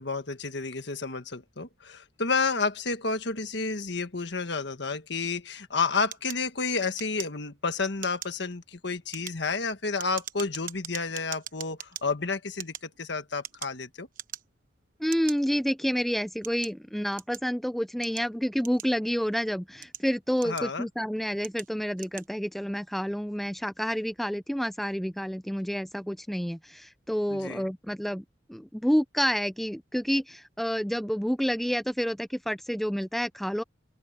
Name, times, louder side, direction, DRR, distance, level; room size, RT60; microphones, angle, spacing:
voice 1, 0.0-14.1 20.4-20.9 27.3-27.7, left 4 dB, 60° left, 1.5 m, -30 dB
sound 1, 6.1-7.6 8.0-8.4 9.0-12.0 12.5-13.8 14.1-14.7 15.1-15.4 16.0-17.5 18.0-19.2 19.7-20.9 21.4-21.7 21.9-22.3, right 10 dB, 45° right, 1.1 m, -41 dB
voice 2, 15.0-33.6, equal, ahead, 0.4 m, -29 dB
open air
head